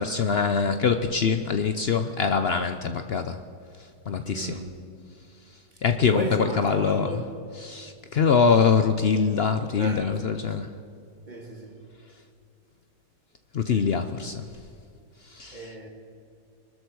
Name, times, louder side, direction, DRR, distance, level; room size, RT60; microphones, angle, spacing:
voice 1, 0.0-3.4 4.1-4.6 5.8-7.2 7.5-10.8 13.5-14.5 15.2-15.7, left 6 dB, 90° left, 0.5 m, -24 dB
voice 2, 4.2-4.8 5.7-7.3 9.8-10.3 10.6-10.7 11.3-11.8 13.7-14.0 15.5-15.9, right 1 dB, 25° right, 1.8 m, -35 dB
22.5 x 13.0 x 4.7 m
omnidirectional pair, 1.9 m